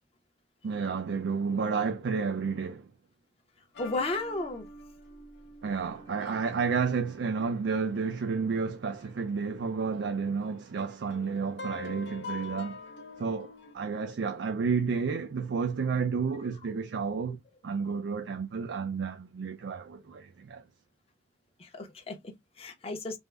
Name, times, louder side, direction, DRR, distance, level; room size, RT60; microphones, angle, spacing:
voice 1, 0.6-2.9 5.6-12.8 13.2-20.6, right 5 dB, 80° right, 0.4 m, -31 dB
sound 1, 3.7-8.9 9.3-9.4 10.0-13.7, left 3 dB, 70° left, 0.6 m, -45 dB
voice 2, 3.8-4.6 21.6-23.2, left 2 dB, 35° left, 0.6 m, -34 dB
3.5 x 2.0 x 3.2 m
head